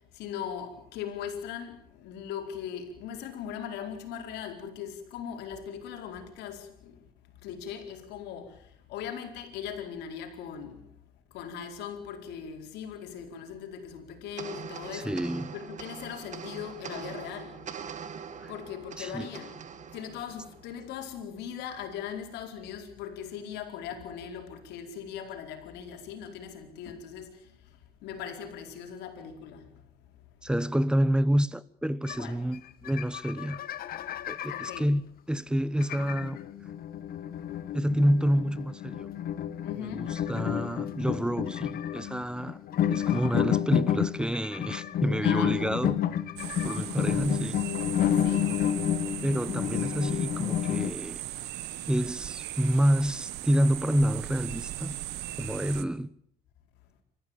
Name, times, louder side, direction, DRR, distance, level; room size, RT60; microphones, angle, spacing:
voice 1, 0.1-7.0 7.4-8.6 8.9-10.9 11.3-15.3 15.5-17.6 18.5-19.6 19.9-27.5 28.0-29.8 32.2-32.4 34.5-34.9 39.6-40.1 45.2-45.7 48.2-48.5, left 8 dB, 85° left, 4.6 m, -39 dB
sound 1, 14.4-21.0, right 7 dB, 45° right, 2.2 m, -43 dB
voice 2, 14.9-15.5 19.0-19.3 30.4-33.6 34.3-35.0 35.3-36.4 37.7-39.1 39.8-42.6 42.9-46.0 46.6-47.6 49.2-51.2 51.9-55.0 55.4-56.1, equal, 5° right, 1.0 m, -28 dB
sound 2, 32.1-32.2 32.5-32.6 32.9-34.8 35.8-50.9, left 10 dB, 60° left, 1.5 m, -30 dB
sound 3, 46.4-55.8, right 15 dB, 85° right, 1.5 m, -38 dB
28.0 x 14.5 x 8.9 m
cardioid pair, 110°, 17 cm